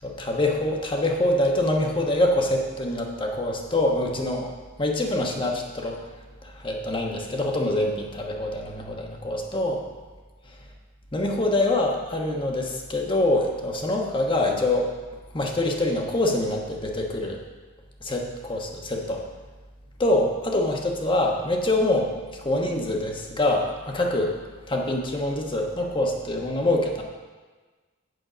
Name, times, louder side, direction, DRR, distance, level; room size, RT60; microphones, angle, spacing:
voice 1, 0.0-4.5 4.8-6.0 6.4-9.8 11.1-14.9 15.3-17.4 18.0-19.2 20.0-24.4 24.7-27.0, left 1 dB, 25° left, 1 dB, 1.2 m, -25 dB
7.9 x 7.6 x 5.1 m, 1.3 s
head